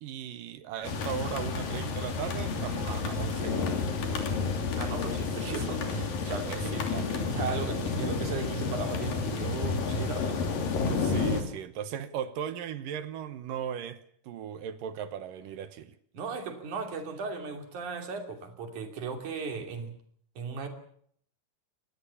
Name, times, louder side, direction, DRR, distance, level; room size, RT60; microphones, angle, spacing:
voice 1, 0.0-3.8 5.4-5.6 6.3-7.3 10.8-15.9, right 9 dB, 70° right, 2.5 m, -37 dB
sound 1, 0.8-11.4, left 4 dB, 60° left, 4.4 m, -31 dB
voice 2, 4.8-6.9 7.2-10.4 16.1-20.0 20.4-20.7, right 4 dB, 50° right, 4.2 m, -36 dB
25.0 x 19.0 x 7.1 m
omnidirectional pair, 4.5 m